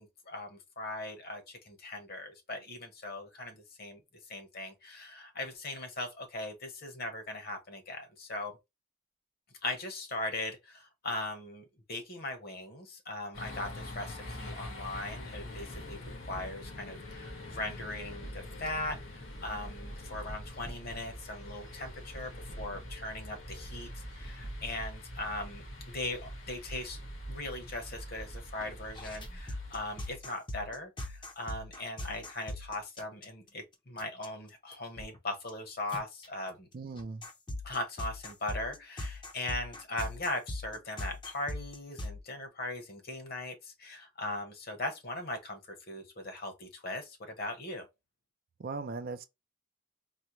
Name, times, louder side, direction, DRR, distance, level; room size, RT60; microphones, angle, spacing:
voice 1, 0.0-4.0 4.3-8.6 9.6-16.0 16.3-25.6 25.9-27.0 27.3-36.7 37.6-45.6 45.9-47.9, left 2 dB, 45° left, 1.0 m, -39 dB
sound 1, 13.3-30.1, equal, 80° left, 1.8 m, -44 dB
sound 2, 29.0-33.5 34.0-34.3 34.7-35.2 35.5-35.6 35.9-36.3 37.0-42.2, left 1 dB, 20° left, 0.6 m, -40 dB
voice 2, 36.7-37.2 48.6-49.3, right 4 dB, 40° right, 0.4 m, -38 dB
4.2 x 2.2 x 3.0 m
head